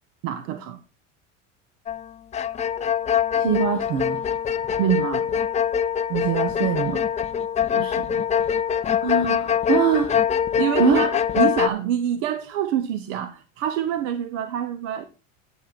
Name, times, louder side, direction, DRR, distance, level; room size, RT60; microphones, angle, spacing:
voice 1, 0.2-0.8 4.8-5.3 7.7-8.3 10.6-15.0, right 10 dB, 90° right, 1.1 m, -26 dB
sound 1, 1.9-2.1 2.3-11.7, left 8 dB, 20° left, 0.4 m, -23 dB
voice 2, 3.3-4.2 6.1-7.0 9.0-10.1 10.8-11.1, right 6 dB, 70° right, 1.7 m, -23 dB
9.4 x 8.9 x 4.2 m
cardioid pair, 135°, 36 cm